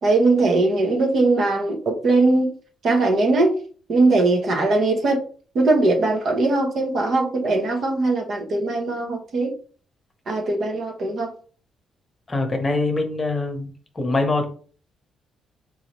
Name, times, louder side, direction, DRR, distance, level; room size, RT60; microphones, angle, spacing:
voice 1, 0.0-2.5 2.8-3.6 3.9-5.2 5.5-9.5 10.3-11.3, right 2 dB, 55° right, 0.9 m, -20 dB
voice 2, 12.3-13.7 13.9-14.4, left 2 dB, 25° left, 0.9 m, -23 dB
3.9 x 2.8 x 3.0 m
cardioid pair, 90°, 0 cm